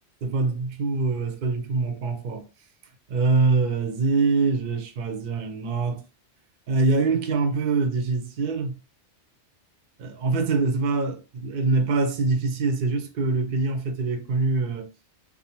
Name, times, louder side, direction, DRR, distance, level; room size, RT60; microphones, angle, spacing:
voice 1, 0.2-2.5 3.1-6.0 6.7-8.8 10.0-14.9, right 3 dB, 60° right, 0.6 m, -24 dB
2.4 x 2.1 x 2.8 m
omnidirectional pair, 1.2 m